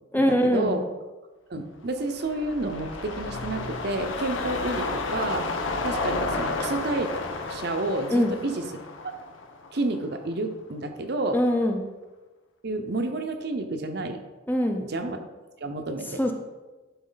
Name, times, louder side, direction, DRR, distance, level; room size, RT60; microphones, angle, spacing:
voice 1, 0.1-0.8 8.1-8.3 11.3-11.8 14.5-14.8 16.1-16.3, equal, 10° left, 3 dB, 0.6 m, -23 dB
voice 2, 1.5-5.5 5.8-7.1 7.5-8.6 9.7-11.4 12.6-14.2 14.9-15.2 15.6-16.3, right 2 dB, 55° right, 6 dB, 0.7 m, -30 dB
sound 1, 1.9-10.3 10.7-10.8, left 3 dB, 85° left, 0.8 m, -32 dB
11.5 x 4.3 x 3.9 m, 1.2 s
head